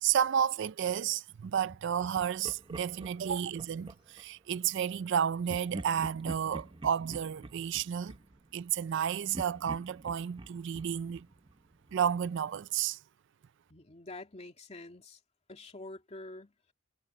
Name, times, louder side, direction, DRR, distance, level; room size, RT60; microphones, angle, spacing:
voice 1, 0.0-8.2 8.5-11.3 11.9-13.0, right 8 dB, 60° right, 0.4 m, -31 dB
Laughter, 2.1-4.3 5.5-9.0 9.3-12.1, right 2 dB, 25° right, 0.7 m, -46 dB
voice 2, 13.7-15.2 15.5-16.7, left 2 dB, 35° left, 2.5 m, -47 dB
head